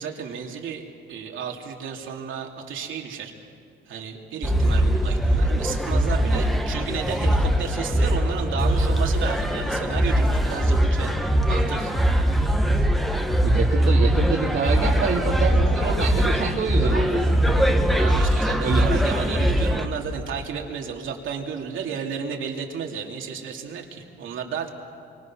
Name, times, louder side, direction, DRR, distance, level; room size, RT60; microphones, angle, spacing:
voice 1, 0.0-3.3 3.9-11.2 11.5-12.0 12.2-12.9 18.0-24.7, right 6 dB, 80° right, 1 dB, 2.7 m, -33 dB
sound 1, 4.4-19.8, equal, ahead, 1.2 m, -21 dB
voice 2, 13.4-17.4 18.6-19.0, right 5 dB, 65° right, -4 dB, 2.2 m, -26 dB
28.0 x 24.5 x 6.1 m, 2.3 s
cardioid pair, 145°, 20 cm